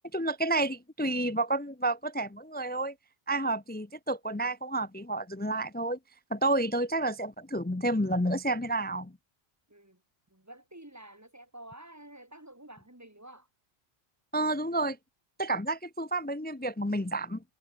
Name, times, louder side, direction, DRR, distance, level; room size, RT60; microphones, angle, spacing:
voice 1, 0.1-2.9 3.3-6.0 6.3-9.1 14.3-15.0 15.4-17.4, right 2 dB, 15° left, 0.3 m, -30 dB
voice 2, 9.7-10.0 10.3-13.5, right 1 dB, 15° right, 2.9 m, -50 dB
omnidirectional pair, 1.1 m